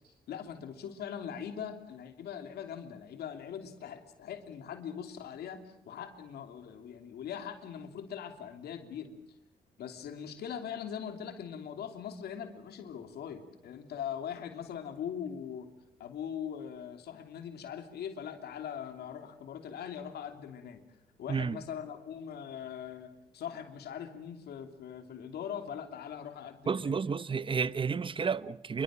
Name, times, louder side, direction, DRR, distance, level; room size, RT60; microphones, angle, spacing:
voice 1, 0.3-9.1 9.8-15.7 16.0-20.8 21.2-26.9, left 8 dB, 85° left, 3.0 m, -41 dB
voice 2, 26.7-28.8, right 5 dB, 30° right, 0.9 m, -31 dB
27.5 x 24.0 x 7.6 m
cardioid pair, 105°, 16 cm